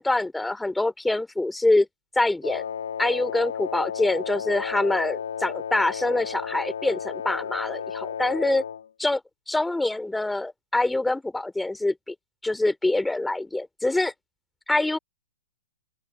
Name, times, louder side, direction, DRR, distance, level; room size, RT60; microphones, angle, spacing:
voice 1, 0.0-1.9 2.2-2.6 3.0-8.6 9.0-9.2 9.5-12.1 12.4-14.1 14.7-15.0, left 2 dB, 5° left, 3.5 m, -25 dB
Wind instrument woodwind instrument, 2.4-8.9, left 7 dB, 75° left, 2.2 m, -33 dB
open air
hypercardioid pair, 125°, 0 cm